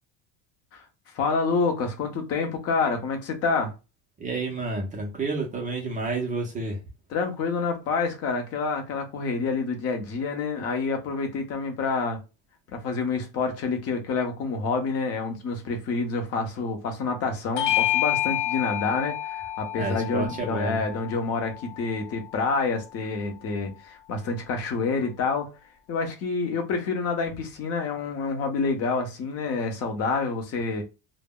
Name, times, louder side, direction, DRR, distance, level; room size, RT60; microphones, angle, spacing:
voice 1, 1.1-3.7 7.1-12.2 12.7-25.5 25.9-30.8, left 4 dB, 35° left, 0.6 m, -28 dB
voice 2, 4.2-6.8 19.8-20.8, right 3 dB, 20° right, 0.4 m, -30 dB
Bell / Doorbell, 17.6-22.4, left 14 dB, 85° left, 0.6 m, -29 dB
2.0 x 2.0 x 3.5 m
cardioid pair, 170°, 46 cm